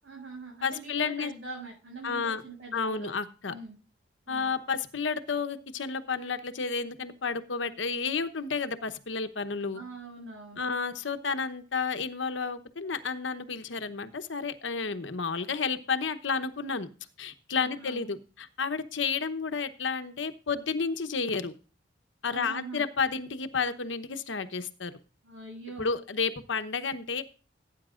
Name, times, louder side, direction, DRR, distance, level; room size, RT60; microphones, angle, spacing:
voice 1, 0.0-3.2 3.5-3.8 4.3-4.6 9.7-10.6 17.5-18.0 22.2-22.8 25.3-25.9, right 3 dB, 90° right, -3 dB, 7.0 m, -43 dB
voice 2, 0.6-1.3 2.0-2.4 2.7-3.5 4.3-9.8 10.5-16.9 17.2-21.5 22.2-24.9 25.8-27.2, left 5 dB, 90° left, 10 dB, 1.0 m, -31 dB
17.5 x 9.3 x 2.5 m, 0.36 s
head